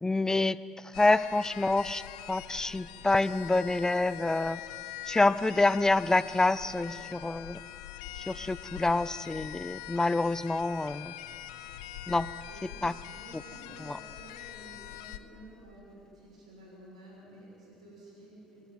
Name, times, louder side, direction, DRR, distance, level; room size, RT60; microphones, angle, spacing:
voice 1, 0.0-0.6 1.0-2.0 2.3-4.6 5.1-7.6 8.3-11.1 12.1-12.3 12.8-12.9 13.8-14.0, left 2 dB, 15° left, 18 dB, 0.5 m, -27 dB
sound 1, 0.9-15.2, left 12 dB, 80° left, 0.8 m, -44 dB
voice 2, 12.5-18.7, right 1 dB, 90° right, -3 dB, 6.2 m, -52 dB
25.5 x 12.5 x 9.4 m, 3.0 s
hypercardioid pair, 55°, 4 cm